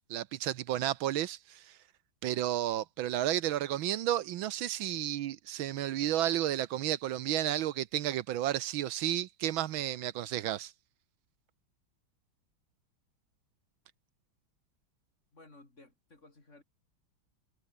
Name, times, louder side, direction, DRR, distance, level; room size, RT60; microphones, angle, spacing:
voice 1, 0.1-1.8 2.2-10.7, right 12 dB, 75° right, 1.6 m, -32 dB
voice 2, 15.3-16.6, left 2 dB, 35° left, 4.4 m, -57 dB
omnidirectional pair, 2.2 m